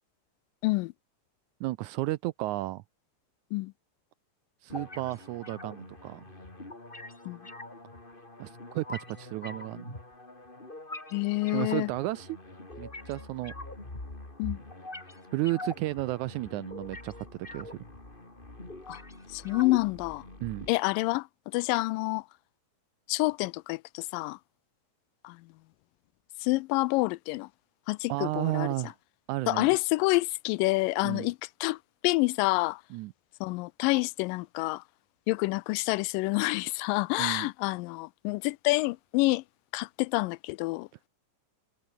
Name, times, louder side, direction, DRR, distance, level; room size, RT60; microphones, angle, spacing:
voice 1, 1.6-2.8 4.6-6.2 8.4-9.9 11.5-12.4 12.8-13.5 15.3-17.3 17.5-17.8 20.4-20.7 28.1-28.9 29.3-29.7 31.0-31.3 32.9-33.1 37.2-37.5, right 18 dB, 80° right, 1.8 m, -33 dB
sound 1, 4.7-20.7, left 2 dB, 15° left, 3.8 m, -44 dB
voice 2, 11.1-11.9 14.4-14.6 18.9-19.0 19.3-20.2 20.7-21.3 21.5-22.2 23.1-24.4 25.2-25.4 26.4-27.5 27.9-28.7 29.5-31.8 32.0-32.8 33.4-34.8 35.3-39.4 39.7-40.9, left 22 dB, 90° left, 2.2 m, -28 dB
omnidirectional pair, 3.8 m